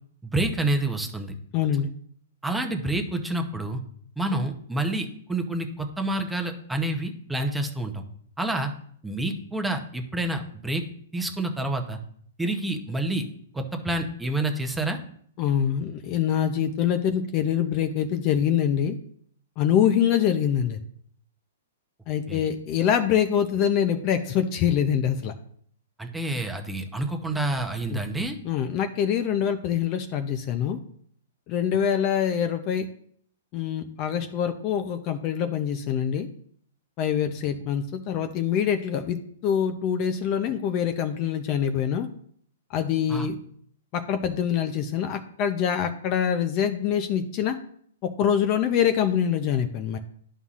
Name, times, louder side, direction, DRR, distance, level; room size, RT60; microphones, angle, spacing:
voice 1, 0.2-1.3 2.4-3.8 4.2-8.0 8.4-8.7 9.0-10.8 11.1-12.0 12.4-13.2 13.5-15.0 22.3-22.4 26.0-28.4 43.1-43.3, right 1 dB, 5° right, 3 dB, 0.8 m, -28 dB
voice 2, 1.5-1.9 15.4-19.0 19.6-20.8 22.1-25.3 27.9-28.0 28.4-30.8 31.5-32.9 33.5-36.3 37.0-42.1 42.7-43.4 43.9-47.6 48.2-50.0, left 8 dB, 30° left, 7 dB, 0.6 m, -25 dB
11.0 x 5.5 x 2.5 m, 0.62 s
hypercardioid pair, 155°, 0 cm